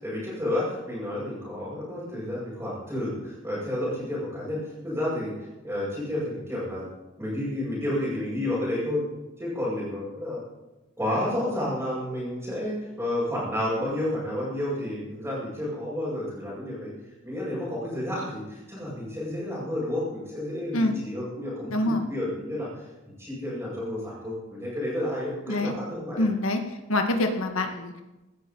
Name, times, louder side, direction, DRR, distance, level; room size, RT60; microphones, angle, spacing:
voice 1, 0.0-6.8 7.2-9.0 9.4-10.4 11.0-16.9 17.2-22.9 23.2-26.3, left 1 dB, 10° right, -11 dB, 7.5 m, -31 dB
voice 2, 21.7-22.0 25.5-25.7 26.2-26.6 26.9-28.0, left 1 dB, 70° left, 5 dB, 2.1 m, -25 dB
18.0 x 13.5 x 5.7 m, 1.1 s
head